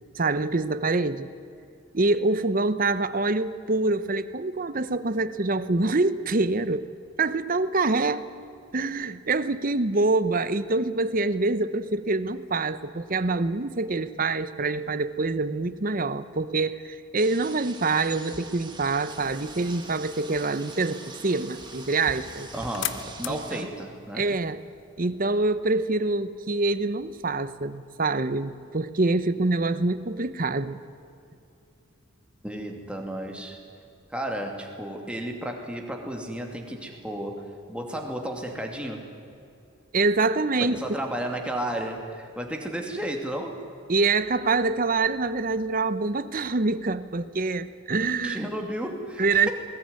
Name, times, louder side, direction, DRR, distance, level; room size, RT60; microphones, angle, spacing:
voice 1, 0.2-1.3 1.9-6.9 7.2-8.3 8.7-22.5 23.3-23.7 24.1-24.6 25.0-30.8 39.9-40.8 43.9-48.5 49.2-49.5, right 3 dB, 40° right, 14 dB, 0.8 m, -25 dB
sound 1, 17.2-23.6, right 4 dB, 20° right, 2.0 m, -43 dB
sound 2, 19.1-25.4, left 10 dB, 55° left, 1.0 m, -41 dB
voice 2, 22.5-24.2 32.4-33.6 34.1-37.4 37.7-39.0 40.6-43.5 48.2-49.5, right 1 dB, 5° right, 1 dB, 2.6 m, -33 dB
20.5 x 19.5 x 9.6 m, 2.6 s
head